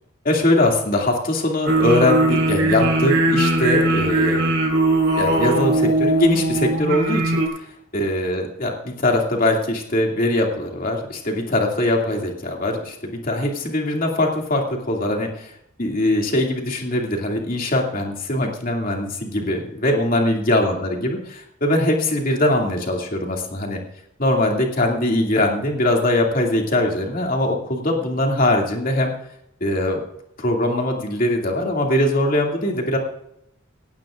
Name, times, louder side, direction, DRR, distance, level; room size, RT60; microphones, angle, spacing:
voice 1, 0.2-4.4 5.2-7.4 7.9-15.5 15.8-23.8 24.2-29.1 29.6-30.0 30.4-33.0, left 1 dB, 45° left, 0 dB, 2.5 m, -21 dB
sound 1, 1.7-7.5, right 2 dB, 65° right, 4.6 m, -19 dB
18.0 x 15.5 x 2.5 m, 0.74 s
head